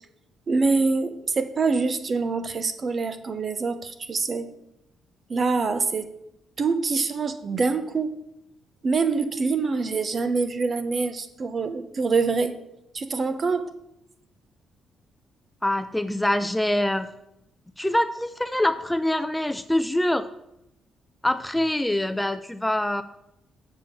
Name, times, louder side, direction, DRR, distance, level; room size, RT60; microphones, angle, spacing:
voice 1, 0.5-4.5 5.3-6.1 6.6-8.2 8.8-12.6 12.9-13.7, right 4 dB, 40° right, 10 dB, 0.8 m, -25 dB
voice 2, 15.6-17.1 17.8-20.3 21.2-23.0, left 1 dB, 5° left, 9 dB, 0.4 m, -24 dB
7.4 x 5.1 x 7.3 m, 0.84 s
cardioid pair, 90°, 0 cm